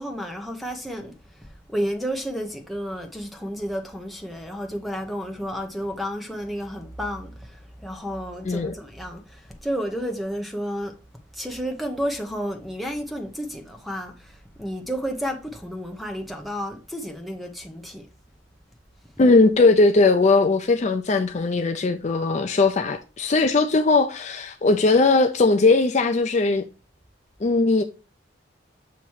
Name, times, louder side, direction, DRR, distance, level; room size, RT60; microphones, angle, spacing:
voice 1, 0.0-11.0 11.3-18.1, equal, ahead, 0.9 m, -31 dB
voice 2, 19.2-26.6 27.4-27.8, left 3 dB, 40° left, 0.4 m, -19 dB
7.1 x 3.0 x 4.5 m
head